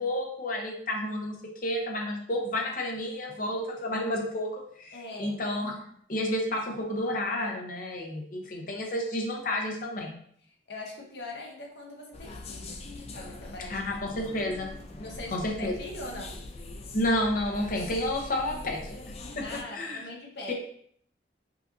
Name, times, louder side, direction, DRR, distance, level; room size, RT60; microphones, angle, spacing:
voice 1, 0.0-1.4 1.6-10.1 13.7-14.7 15.3-15.7 16.9-19.0 19.4-20.0 20.5-20.6, left 1 dB, 50° left, 1 dB, 0.8 m, -31 dB
voice 2, 4.9-5.4 10.7-12.8 13.1-13.8 15.0-16.4 19.4-20.5, left 2 dB, 70° left, -1 dB, 1.0 m, -41 dB
sound 1, 12.1-19.6, left 2 dB, 35° left, 0.4 m, -42 dB
5.6 x 2.6 x 2.6 m, 0.64 s
head